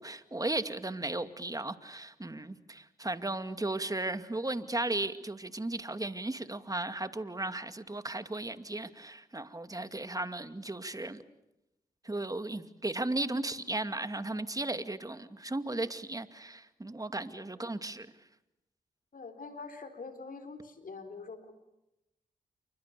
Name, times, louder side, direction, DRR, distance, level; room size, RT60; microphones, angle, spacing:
voice 1, 0.0-11.2 12.0-18.1, right 2 dB, 25° right, 10 dB, 2.4 m, -35 dB
voice 2, 19.1-21.5, left 4 dB, 65° left, 7 dB, 4.5 m, -45 dB
29.0 x 24.5 x 6.9 m, 0.90 s
supercardioid pair, 45°, 16 cm